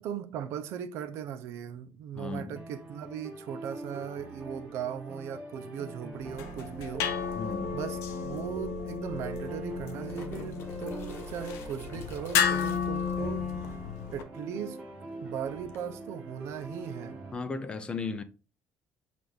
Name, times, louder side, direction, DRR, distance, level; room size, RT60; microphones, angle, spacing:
voice 1, 0.0-7.1 7.7-13.5 14.1-14.8 15.2-17.2, right 8 dB, 70° right, 0.6 m, -38 dB
voice 2, 2.1-2.6 7.3-7.7 17.3-18.2, left 4 dB, 20° left, 0.4 m, -35 dB
sound 1, 2.6-17.3, right 2 dB, 25° right, 1.1 m, -43 dB
sound 2, 6.2-14.2, left 7 dB, 85° left, 0.7 m, -33 dB
sound 3, 7.9-8.0 8.3-8.4 9.4-13.1 15.7-15.8, left 5 dB, 55° left, 0.9 m, -47 dB
6.1 x 2.5 x 3.4 m
cardioid pair, 145°, 5 cm